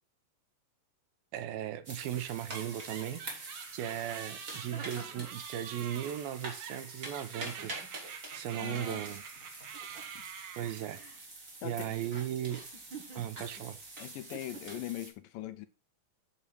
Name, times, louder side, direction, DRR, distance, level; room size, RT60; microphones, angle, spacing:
voice 1, 1.3-9.2 10.6-11.0 11.6-12.7 13.2-13.8, right 11 dB, 85° right, 2.6 m, -37 dB
sound 1, 1.9-15.1, right 2 dB, 25° right, 2.6 m, -46 dB
sound 2, 2.1-11.2, right 8 dB, 65° right, 1.7 m, -47 dB
sound 3, 4.7-5.4 7.2-8.1 8.7-9.0 9.7-10.2 10.9-11.2 12.7-13.7 14.3-14.8, right 5 dB, 45° right, 1.7 m, -50 dB
voice 2, 8.6-9.0 11.6-11.9 14.0-15.7, left 13 dB, 75° left, 2.3 m, -41 dB
8.6 x 6.9 x 4.6 m
omnidirectional pair, 4.2 m